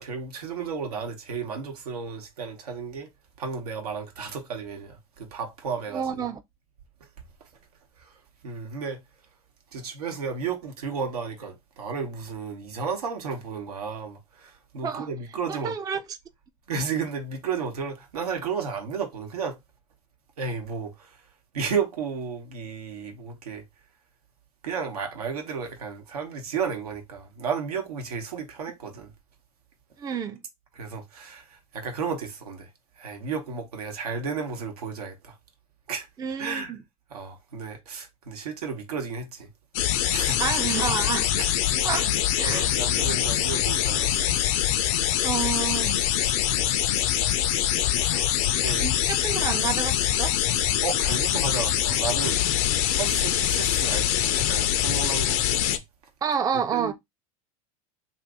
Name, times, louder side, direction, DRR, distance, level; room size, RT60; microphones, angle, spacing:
voice 1, 0.0-3.1 3.4-6.3 7.4-7.5 8.0-8.1 8.4-9.0 9.7-15.8 16.7-19.6 20.4-21.2 21.5-23.6 24.6-29.1 30.7-32.7 33.0-35.3 35.9-36.1 36.4-36.8 37.1-39.5 40.1-40.5 41.4-41.5 42.0-44.4 46.4-46.8 47.0-47.3 47.9-48.9 50.8-52.4 52.9-55.8 56.7-56.9, right 5 dB, 85° right, 0.9 m, -33 dB
voice 2, 5.9-6.4 14.8-15.1 15.5-16.0 30.0-30.4 36.2-36.8 40.4-41.3 41.8-42.1 42.4-42.7 45.2-46.0 48.8-50.3 56.2-56.9, right 7 dB, 20° right, 0.4 m, -29 dB
sound 1, 39.7-55.8, left 11 dB, 65° left, 0.5 m, -24 dB
2.6 x 2.5 x 3.4 m
hypercardioid pair, 90°, 19 cm